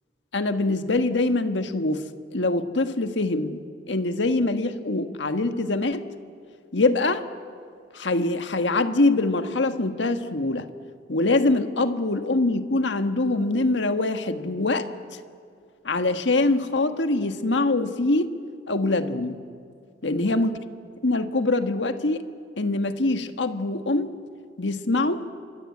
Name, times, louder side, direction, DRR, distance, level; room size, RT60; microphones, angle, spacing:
voice 1, 0.3-2.0 2.3-3.6 3.9-6.0 6.7-7.2 7.9-10.7 11.1-14.9 15.8-18.3 18.7-19.4 20.0-20.5 21.0-22.2 22.6-24.1 24.6-25.2, left 2 dB, 80° left, 8 dB, 1.5 m, -24 dB
28.5 x 24.5 x 8.6 m, 2.2 s
head